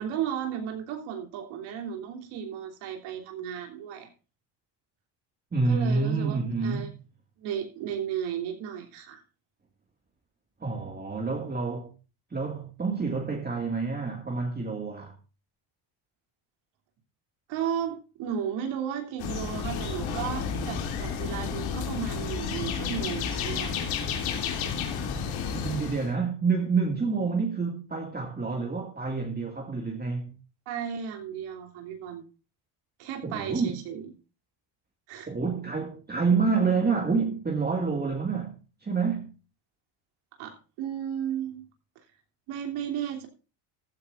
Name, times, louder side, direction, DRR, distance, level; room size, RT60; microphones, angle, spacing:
voice 1, 0.0-4.1 5.6-6.9 7.4-9.2 17.5-23.8 30.7-32.2 33.0-34.0 35.1-35.3 40.4-41.7 42.5-43.3, right 8 dB, 85° right, 3.3 m, -34 dB
voice 2, 5.5-6.9 10.6-11.9 12.3-15.2 25.5-30.4 33.2-33.8 35.3-39.4, right 4 dB, 20° right, 2.1 m, -28 dB
sound 1, 19.2-26.1, left 6 dB, 75° left, 3.0 m, -31 dB
14.5 x 14.0 x 2.5 m
cardioid pair, 105°, 48 cm